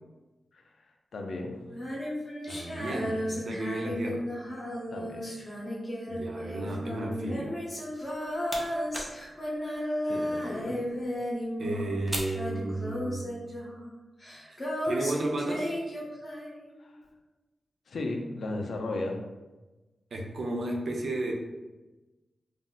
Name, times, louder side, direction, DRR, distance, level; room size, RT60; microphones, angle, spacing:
voice 1, 1.1-1.6 4.9-5.2 10.1-10.8 16.8-16.9 17.9-19.2, left 2 dB, 75° left, 2 dB, 0.4 m, -35 dB
Female singing, 1.7-12.0 12.3-16.7, equal, 35° left, 0.9 m, -34 dB
voice 2, 2.5-4.3 6.1-7.6 11.6-13.3 14.5-14.6 14.8-15.7 20.1-21.3, right 2 dB, 70° right, 1 dB, 0.5 m, -33 dB
sound 1, 8.0-13.3, right 1 dB, 15° right, 0.5 m, -43 dB
2.4 x 2.1 x 3.8 m, 1.1 s
wide cardioid pair, 85°, 0 cm